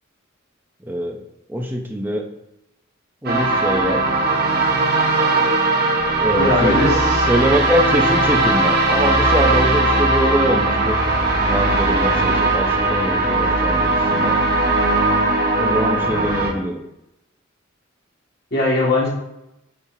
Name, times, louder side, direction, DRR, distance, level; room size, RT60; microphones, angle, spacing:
voice 1, 0.8-1.2 1.5-2.2 3.2-4.0 6.2-7.0 7.3-11.0 11.4-14.4 15.6-16.8, equal, 10° right, 2 dB, 0.7 m, -23 dB
sound 1, 3.3-16.5, right 2 dB, 50° right, 1.2 m, -18 dB
voice 2, 6.3-7.2 18.5-19.1, left 2 dB, 50° left, -5 dB, 2.2 m, -19 dB
7.0 x 5.5 x 2.8 m, 0.87 s
head